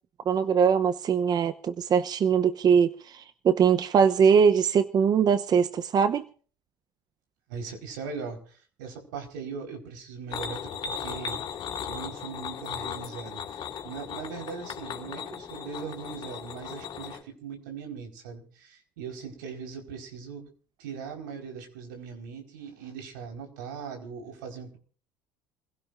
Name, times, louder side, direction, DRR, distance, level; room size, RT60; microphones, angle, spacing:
voice 1, 0.3-6.3, right 7 dB, 40° right, 0.9 m, -22 dB
voice 2, 7.5-11.4 11.8-20.5 20.8-24.8, right 6 dB, 85° right, 4.7 m, -40 dB
sound 1, 10.3-17.2, left 7 dB, 45° left, 3.1 m, -37 dB
28.0 x 16.5 x 2.6 m
hypercardioid pair, 80°, 10 cm